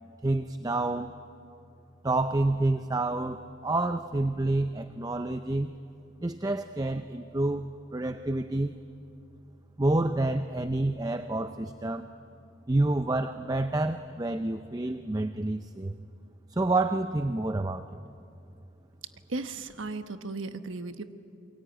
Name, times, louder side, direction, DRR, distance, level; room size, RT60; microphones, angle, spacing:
voice 1, 0.2-1.1 2.0-5.7 6.2-8.7 9.8-12.1 12.7-15.9 16.5-18.0, right 2 dB, 20° right, 9 dB, 0.5 m, -28 dB
voice 2, 19.3-21.0, right 3 dB, 75° right, 9 dB, 1.2 m, -36 dB
27.5 x 23.0 x 9.1 m, 2.6 s
head